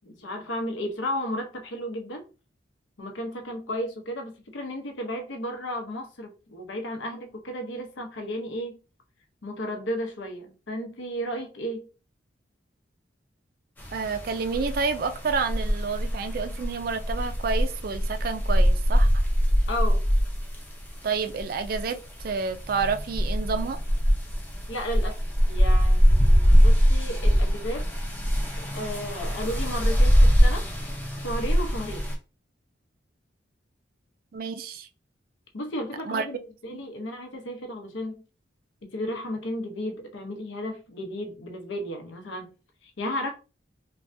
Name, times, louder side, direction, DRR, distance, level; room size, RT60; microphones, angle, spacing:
voice 1, 0.0-2.3 3.0-8.8 9.4-11.9 19.7-20.0 24.7-25.2 25.5-27.9 28.6-30.6 31.2-32.1 35.5-38.2 38.8-42.5 42.8-43.3, equal, 80° left, 0.7 m, -33 dB
sound 1, 13.8-32.1, equal, 10° left, 0.5 m, -23 dB
voice 2, 13.9-19.2 21.0-23.8 34.3-34.9 36.0-36.2 36.7-36.8, right 5 dB, 50° right, 0.3 m, -29 dB
3.3 x 2.2 x 2.6 m
head